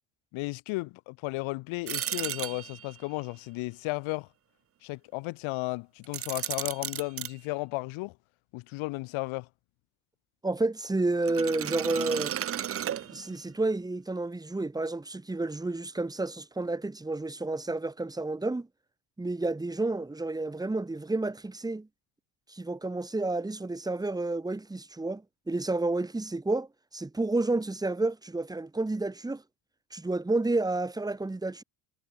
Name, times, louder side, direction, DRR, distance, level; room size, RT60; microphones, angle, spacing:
voice 1, 0.3-4.3 4.8-8.1 8.5-9.5, left 23 dB, 70° left, 5.7 m, -34 dB
sound 1, 1.9-3.0 6.0-7.3 11.2-13.5, right 10 dB, 25° right, 1.2 m, -34 dB
voice 2, 10.4-12.4 13.0-18.7 19.2-21.9 22.5-26.7 26.9-29.4 29.9-31.6, right 2 dB, 5° right, 7.1 m, -30 dB
cardioid pair, 170°, 50 cm